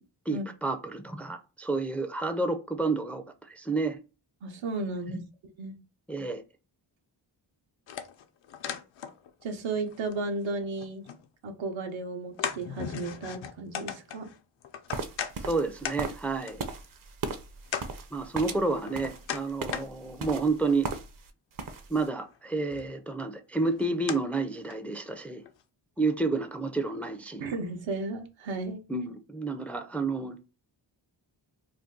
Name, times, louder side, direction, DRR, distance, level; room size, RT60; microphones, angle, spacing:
voice 1, 0.3-4.0 5.1-5.2 6.1-6.4 15.4-16.6 18.1-20.9 21.9-25.4 26.0-27.5 28.9-30.4, right 3 dB, 5° left, 0.3 m, -30 dB
voice 2, 4.4-5.2 5.6-5.8 9.4-11.0 11.4-14.3 27.4-28.8, right 3 dB, 80° right, 0.8 m, -34 dB
sound 1, 7.9-9.5 9.8-11.3 11.7-11.8 12.4-15.3 15.8-16.0 16.5-16.6 17.2-17.3 17.7-17.9 18.5-19.8 20.4-20.9 22.2-22.4 22.7-23.1 23.6-24.2 24.7-24.8 25.4-25.5, left 8 dB, 75° left, 0.6 m, -37 dB
sound 2, 14.9-21.3 21.5-22.1, right 4 dB, 45° right, 0.6 m, -37 dB
2.6 x 2.2 x 3.6 m
cardioid pair, 60°, 46 cm